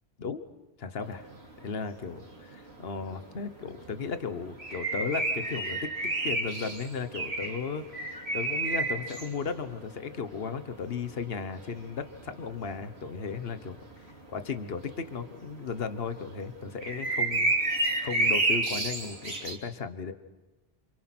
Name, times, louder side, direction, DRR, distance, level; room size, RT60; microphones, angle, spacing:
voice 1, 0.8-1.3 1.6-5.9 6.2-13.8 14.3-20.1, left 5 dB, 70° left, 10 dB, 1.4 m, -35 dB
sound 1, 1.0-1.6 1.9-2.0 2.2-14.4 14.8-15.4 15.7-15.8 16.0-19.6, right 2 dB, 85° right, 3.2 m, -31 dB
28.5 x 26.5 x 6.1 m, 1.1 s
omnidirectional pair, 1.0 m